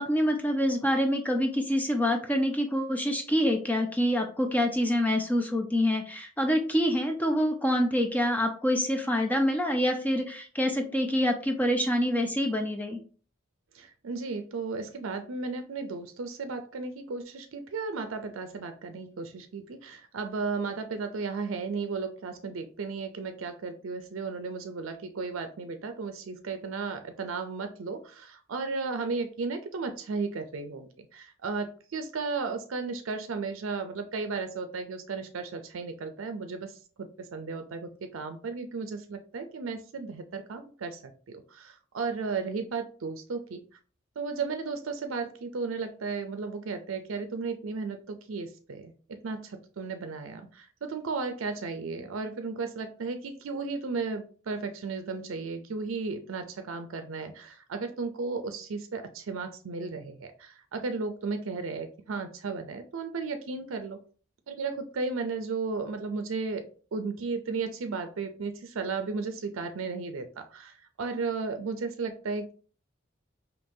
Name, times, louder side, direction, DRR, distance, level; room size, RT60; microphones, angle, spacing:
voice 1, 0.0-13.0, equal, 10° left, 4 dB, 0.5 m, -26 dB
voice 2, 13.7-41.0 41.3-43.6 44.2-64.0 64.5-66.7 66.9-72.5, right 4 dB, 85° right, 8 dB, 0.5 m, -34 dB
5.1 x 2.9 x 2.6 m, 0.40 s
head